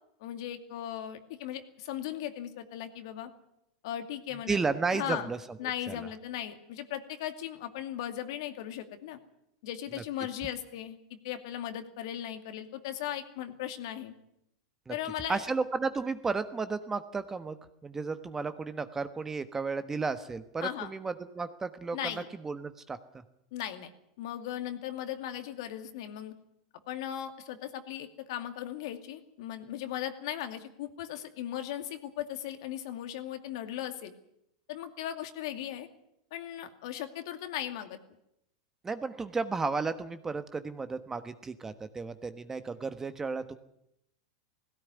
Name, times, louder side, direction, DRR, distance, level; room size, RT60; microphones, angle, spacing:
voice 1, 0.2-3.3 3.8-4.6 4.9-5.3 5.6-9.2 9.6-14.1 14.9-15.4 20.6-20.9 21.9-22.3 23.5-23.9 24.2-26.3 26.9-34.1 34.7-35.9 36.3-38.0, left 11 dB, 65° left, 8 dB, 2.4 m, -37 dB
voice 2, 4.5-5.4 5.9-6.1 9.9-10.0 14.9-15.0 15.3-17.6 17.8-22.0 22.4-23.2 38.8-43.5, right 4 dB, 15° right, 11 dB, 1.3 m, -33 dB
17.5 x 17.0 x 9.7 m, 0.79 s
hypercardioid pair, 115°, 3 cm